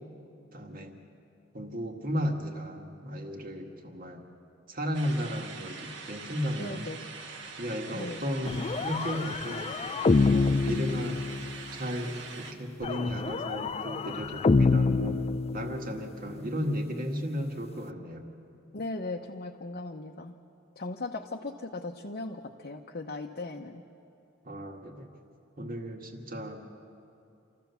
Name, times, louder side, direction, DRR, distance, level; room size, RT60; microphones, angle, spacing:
voice 1, 0.5-1.0 1.5-4.2 4.7-7.0 7.6-9.7 10.3-11.2 11.7-15.3 15.5-18.2 24.4-25.1 25.6-26.6, equal, 45° right, 2 dB, 1.9 m, -34 dB
sound 1, 4.9-12.5, right 4 dB, 65° right, 1.5 m, -43 dB
voice 2, 6.6-7.0 7.9-8.3 18.7-20.3 20.8-23.8, left 2 dB, 50° left, 1 dB, 0.8 m, -38 dB
sound 2, 8.5-11.7 12.8-16.1, left 3 dB, 30° left, 0.4 m, -27 dB
26.0 x 14.5 x 7.0 m, 2.7 s
head